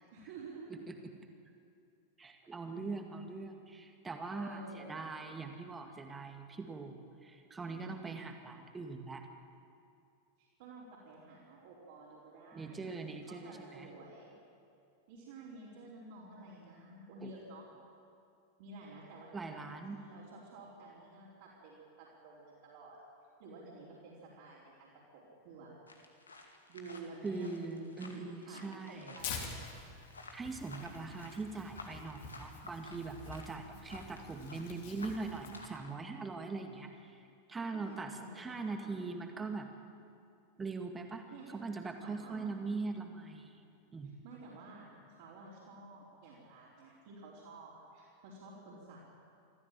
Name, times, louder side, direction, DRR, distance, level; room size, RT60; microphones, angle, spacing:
voice 1, 0.1-0.9 2.4-2.5 4.3-5.0 10.4-12.9 13.2-14.3 15.1-17.7 18.6-23.0 23.4-25.7 26.7-29.8 33.7-33.8 37.7-39.0 41.3-41.5 42.0-42.6 44.0-49.1, right 2 dB, 50° right, -7 dB, 4.5 m, -51 dB
voice 2, 2.2-9.3 12.5-13.9 17.2-17.3 19.3-20.0 27.2-29.1 30.3-37.1 37.5-39.7 40.6-41.2 41.5-43.6 43.9-44.1, right 4 dB, 15° right, 4 dB, 2.1 m, -41 dB
sound 1, 25.9-35.9, left 3 dB, 75° left, 2.2 m, -53 dB
Tearing, 29.2-35.7, left 5 dB, 50° left, 3.2 m, -47 dB
26.5 x 14.5 x 7.7 m, 2.5 s
figure-of-eight pair, 90°, 0 cm